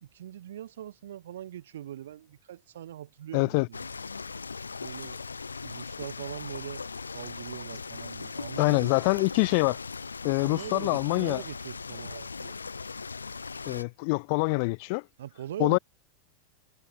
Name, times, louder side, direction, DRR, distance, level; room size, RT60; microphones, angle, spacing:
voice 1, 0.0-3.9 4.8-5.2 5.6-9.2 10.4-12.6 15.2-15.8, right 11 dB, 60° right, 1.1 m, -41 dB
voice 2, 3.3-3.7 8.6-9.8 10.2-11.4 13.7-15.0 15.6-15.8, left 31 dB, 45° left, 0.4 m, -25 dB
sound 1, 3.7-13.8, left 4 dB, 75° left, 1.3 m, -39 dB
figure-of-eight pair, 90°, 0 cm